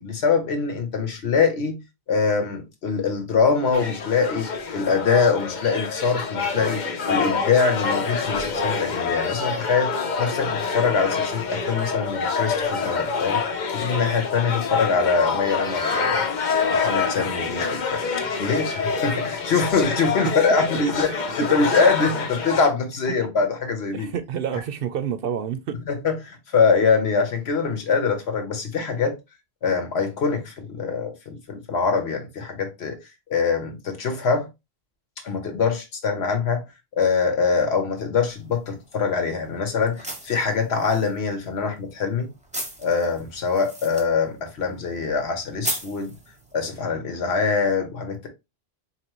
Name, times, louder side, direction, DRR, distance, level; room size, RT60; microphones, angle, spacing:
voice 1, 0.0-1.8 2.1-13.4 13.7-16.2 16.7-18.0 18.4-21.1 21.4-24.1 25.9-29.1 29.6-33.0 33.3-34.5 35.2-36.6 36.9-42.3 42.8-46.1 46.5-48.3, left 5 dB, 85° left, 1.2 m, -23 dB
sound 1, 3.7-22.7, left 5 dB, 50° left, 0.8 m, -26 dB
voice 2, 23.9-25.8, right 8 dB, 65° right, 0.7 m, -29 dB
sound 2, 38.2-46.8, right 1 dB, 10° right, 0.8 m, -38 dB
4.2 x 3.0 x 3.0 m
omnidirectional pair, 1.1 m